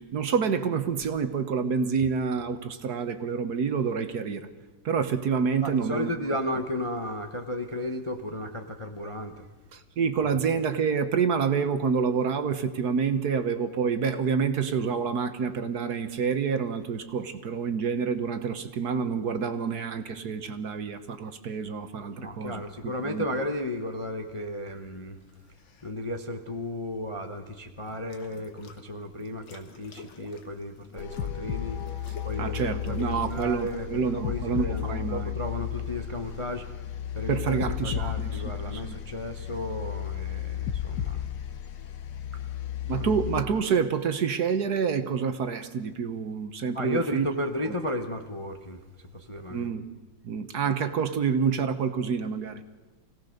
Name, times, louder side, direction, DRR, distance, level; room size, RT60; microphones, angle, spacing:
voice 1, 0.0-4.5 4.8-6.1 9.7-23.2 32.4-35.4 37.3-39.0 42.9-47.3 47.6-47.7 49.5-49.8 50.2-52.6, right 6 dB, 55° right, 9 dB, 1.4 m, -28 dB
voice 2, 5.6-9.5 22.2-25.2 25.8-31.8 32.2-36.7 37.1-41.2 42.3-42.4 42.8-43.1 46.7-48.8 49.1-49.7, left 1 dB, 25° left, 4 dB, 0.7 m, -34 dB
sound 1, 25.2-25.9 27.8-28.8 29.2-33.8, left 5 dB, 75° left, 2.3 m, -50 dB
sound 2, 31.0-43.4, left 10 dB, 60° left, 1.4 m, -34 dB
25.5 x 17.5 x 6.6 m, 1.2 s
omnidirectional pair, 2.2 m